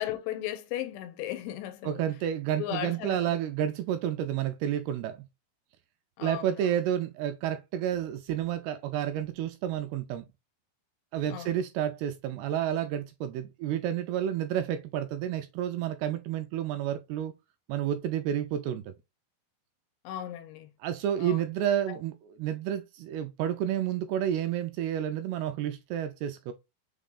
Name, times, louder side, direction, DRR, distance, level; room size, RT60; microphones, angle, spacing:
voice 1, 0.0-2.0 2.6-3.2 6.2-6.7 11.3-11.5 20.0-20.7 21.2-21.5 21.9-22.0, left 12 dB, 85° left, 2.6 m, -36 dB
voice 2, 1.8-5.2 6.2-10.3 11.1-17.3 17.7-18.9 20.8-26.5, right 10 dB, 85° right, 2.3 m, -30 dB
6.3 x 2.9 x 2.3 m
omnidirectional pair, 4.8 m